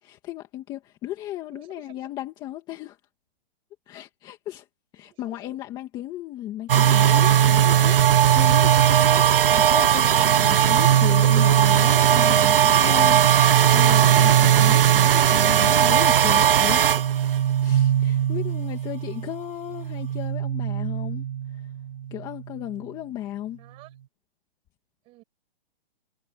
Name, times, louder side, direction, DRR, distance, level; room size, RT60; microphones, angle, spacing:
voice 1, 0.0-3.0 3.9-4.7 4.9-21.2 22.1-23.6, left 14 dB, 15° left, 2.0 m, -35 dB
voice 2, 1.5-2.1 5.1-5.5 23.6-23.9 25.0-25.2, right 20 dB, 20° right, 6.3 m, -52 dB
sound 1, 6.7-19.4 19.7-22.2, right 10 dB, 65° right, 0.8 m, -18 dB
hypercardioid pair, 170°, 29 cm